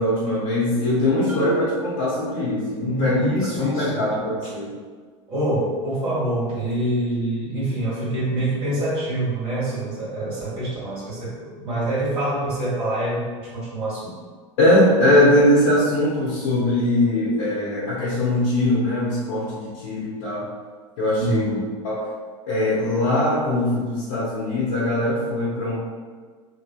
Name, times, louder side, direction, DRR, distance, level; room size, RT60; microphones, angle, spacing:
voice 1, 0.0-3.2 3.5-4.7 14.6-20.5 21.0-21.5 21.8-22.0 22.5-25.8, left 1 dB, 70° left, -8 dB, 0.8 m, -21 dB
Marimba xylophone, 1.3-3.0, right 4 dB, 10° right, 0.6 m, -35 dB
voice 2, 2.8-4.0 5.3-14.1 21.2-21.7, right 1 dB, 35° right, -8 dB, 1.5 m, -26 dB
2.7 x 2.6 x 2.2 m, 1.5 s
hypercardioid pair, 90°, 16 cm